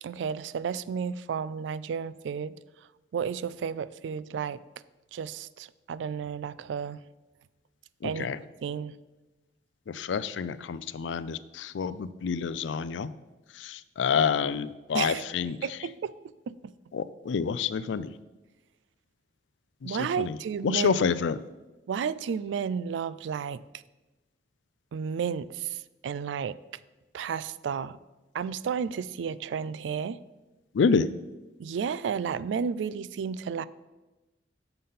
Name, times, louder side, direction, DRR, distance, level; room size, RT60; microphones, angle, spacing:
voice 1, 0.0-2.5 3.1-4.6 5.1-7.0 8.0-8.3 8.6-9.0 14.9-15.2 15.6-16.1 16.5-16.6 19.8-21.1 21.9-23.6 24.9-26.6 27.1-28.0 28.3-30.2 31.6-33.7, right 7 dB, 80° right, 17 dB, 0.3 m, -32 dB
voice 2, 8.0-8.4 9.9-13.1 13.6-15.6 16.9-18.1 19.8-20.4 20.6-21.4 30.7-31.1, left 6 dB, 80° left, 15 dB, 0.4 m, -28 dB
6.8 x 5.6 x 5.6 m, 1.1 s
head